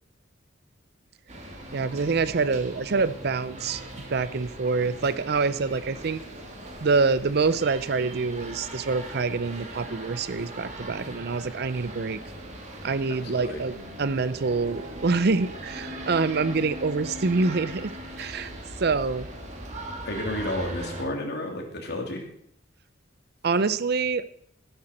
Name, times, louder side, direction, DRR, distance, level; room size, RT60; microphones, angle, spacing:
sound 1, 1.3-21.0, right 1 dB, 40° right, 2.3 m, -40 dB
Electric guitar / Strum, 1.7-10.0, right 2 dB, 45° left, 3.6 m, -49 dB
voice 1, 1.7-3.8 4.1-6.2 6.8-12.2 12.8-18.5 18.8-19.3 23.4-24.2, right 4 dB, 60° right, 15 dB, 0.6 m, -26 dB
voice 2, 13.1-13.6 20.0-22.2, left 1 dB, 60° left, 2 dB, 2.7 m, -32 dB
13.0 x 11.0 x 4.3 m, 0.65 s
head